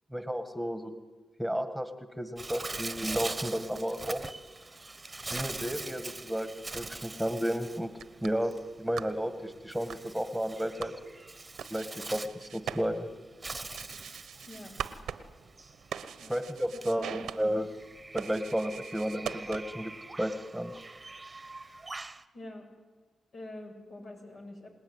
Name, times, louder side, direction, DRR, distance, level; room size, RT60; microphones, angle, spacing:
voice 1, 0.1-0.9 1.4-1.9 2.2-4.2 5.3-7.9 8.2-10.9 11.7-13.1 16.3-17.7 18.1-19.9 20.2-20.7, equal, ahead, 8 dB, 1.8 m, -32 dB
Bird, 2.4-22.2, right 3 dB, 25° right, 1.2 m, -43 dB
sound 1, 8.0-19.9, right 8 dB, 85° right, 1.1 m, -43 dB
voice 2, 14.5-14.8 16.2-16.3 17.0-17.1 22.3-22.7 23.3-24.7, left 1 dB, 65° left, 1 dB, 7.5 m, -45 dB
27.0 x 19.5 x 9.8 m, 1.3 s
cardioid pair, 65°, 0 cm